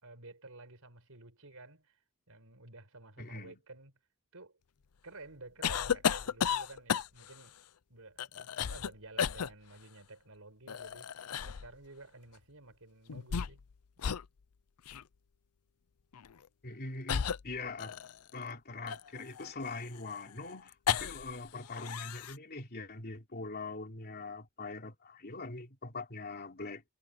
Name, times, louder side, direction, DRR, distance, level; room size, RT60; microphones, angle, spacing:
voice 1, 0.0-2.0 2.3-3.9 4.3-4.6 5.0-7.6 7.9-11.1 11.4-13.6, right 2 dB, 70° right, 5.6 m, -52 dB
voice 2, 3.2-3.6 16.6-17.9 18.3-26.8, left 3 dB, 45° left, 3.4 m, -42 dB
sound 1, 5.6-7.4 8.2-8.9 9.2-9.5 10.7-11.7 13.1-13.7 14.0-14.3 14.9-15.0 16.1-16.3 17.1-18.3 18.9-21.4 21.6-22.4, left 7 dB, 85° left, 0.6 m, -34 dB
head